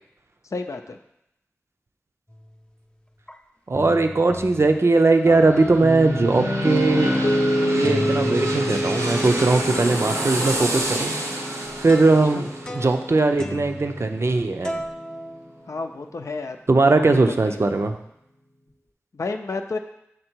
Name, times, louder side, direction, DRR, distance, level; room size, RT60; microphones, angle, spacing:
voice 1, 0.5-1.0 12.3-12.4 15.7-16.6 16.9-17.0 17.4-17.6 19.1-19.8, left 3 dB, 80° left, 6 dB, 0.5 m, -30 dB
sound 1, 2.3-2.7 3.3-3.4 3.7-4.8 5.3-7.5 7.8-14.4 14.6-16.0, equal, 15° left, 0.5 m, -36 dB
voice 2, 3.7-7.2 7.6-11.1 11.8-14.8 16.7-18.0, right 3 dB, 60° right, 6 dB, 0.5 m, -19 dB
sound 2, 5.1-14.8 15.2-15.3, right 1 dB, 85° right, 0.8 m, -31 dB
Piano, 5.8-13.9, equal, 45° left, 0.8 m, -26 dB
6.7 x 3.7 x 4.5 m, 0.80 s
wide cardioid pair, 55°, 5 cm